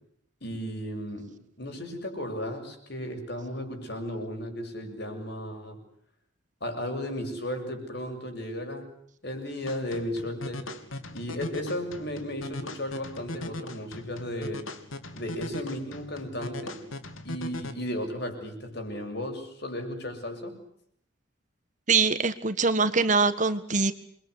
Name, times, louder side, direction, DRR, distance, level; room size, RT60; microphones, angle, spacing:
voice 1, 0.4-5.8 6.6-8.9 9.2-10.7 11.1-14.7 15.1-16.8 17.2-20.6, left 1 dB, 55° left, 5 dB, 7.6 m, -35 dB
sound 1, 9.7-17.7, left 1 dB, 85° left, 3.2 m, -39 dB
voice 2, 21.9-23.9, right 4 dB, 35° right, 11 dB, 1.6 m, -23 dB
28.5 x 23.0 x 8.3 m, 0.68 s
head